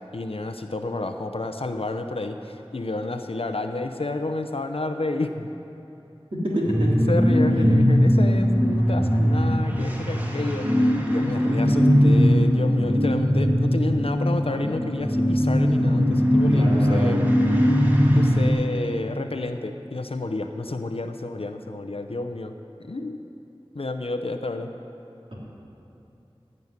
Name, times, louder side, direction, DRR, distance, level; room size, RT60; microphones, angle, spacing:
voice 1, 0.1-5.5 7.1-17.2 18.1-22.5 22.8-23.2 23.7-24.7, left 2 dB, 75° left, 6 dB, 0.7 m, -30 dB
voice 2, 6.3-6.9 11.4-11.8 16.5-17.1, equal, 65° right, -5 dB, 3.3 m, -26 dB
sound 1, 6.6-18.5, equal, 15° right, 1.9 m, -20 dB
15.0 x 5.5 x 9.9 m, 3.0 s
wide cardioid pair, 45°, 10 cm